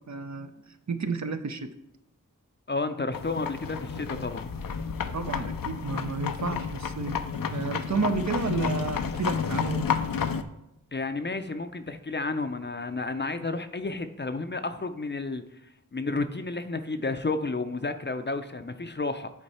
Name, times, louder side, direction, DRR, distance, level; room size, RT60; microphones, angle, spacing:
voice 1, 0.1-1.7 5.1-7.2 7.5-9.9, right 4 dB, 55° right, 8 dB, 0.6 m, -31 dB
voice 2, 2.7-4.5 10.9-15.4 15.9-19.3, left 3 dB, 35° left, 9 dB, 0.5 m, -31 dB
sound 1, 3.1-10.4, left 6 dB, 85° left, 0.5 m, -31 dB
8.5 x 4.4 x 4.2 m, 0.86 s
wide cardioid pair, 50°, 33 cm